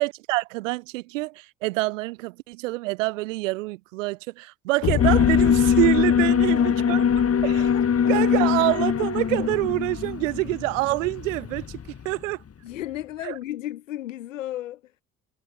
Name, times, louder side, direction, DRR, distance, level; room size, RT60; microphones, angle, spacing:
voice 1, 0.0-7.0 7.4-7.7 8.1-11.8 12.0-12.4 13.2-13.3, right 21 dB, 85° right, 4.1 m, -26 dB
sound 1, 4.8-7.4, left 12 dB, 60° left, 3.3 m, -27 dB
Alarm, 5.0-12.1, left 7 dB, 40° left, 1.6 m, -22 dB
voice 2, 6.2-7.4 7.7-8.1 12.6-14.9, left 13 dB, 90° left, 7.9 m, -35 dB
hypercardioid pair, 50°, 37 cm